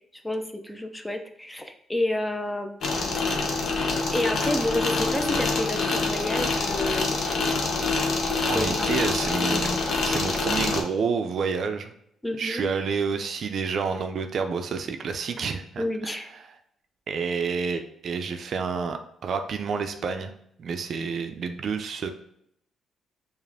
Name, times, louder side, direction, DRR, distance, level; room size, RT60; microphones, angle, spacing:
voice 1, 0.2-2.9 4.1-7.2 8.3-8.9 9.4-9.6 12.2-12.7 15.8-16.3, left 1 dB, 10° left, 6 dB, 0.5 m, -30 dB
sound 1, 2.8-10.8, left 3 dB, 60° left, 0.8 m, -26 dB
voice 2, 8.5-11.9 12.4-16.4 17.1-20.3 20.6-22.1, right 5 dB, 60° right, 7 dB, 0.4 m, -29 dB
4.8 x 2.5 x 3.4 m, 0.72 s
cardioid pair, 90°, 0 cm